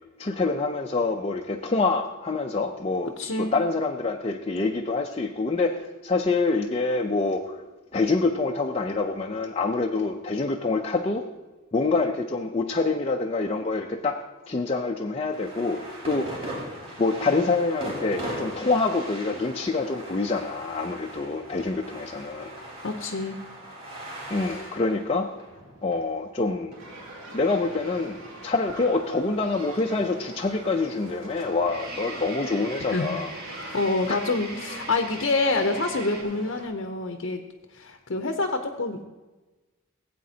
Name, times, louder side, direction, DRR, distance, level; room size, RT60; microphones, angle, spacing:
voice 1, 0.2-7.6 7.9-11.2 11.7-14.2 14.5-16.3 17.0-22.5 24.3-25.3 25.8-26.7 27.3-33.3 34.1-34.2, left 3 dB, 30° left, 2 dB, 0.5 m, -26 dB
voice 2, 3.2-3.5 22.8-23.4 24.3-24.8 32.9-37.4 37.7-39.0, left 3 dB, 60° left, 4 dB, 0.7 m, -27 dB
sound 1, 15.3-26.8, right 1 dB, 30° right, 2.9 m, -39 dB
sound 2, 22.5-24.6 31.6-36.2, right 2 dB, 45° right, 1.9 m, -43 dB
sound 3, 26.8-36.7, right 1 dB, 75° right, 2.4 m, -43 dB
16.5 x 8.5 x 2.8 m, 1.2 s
head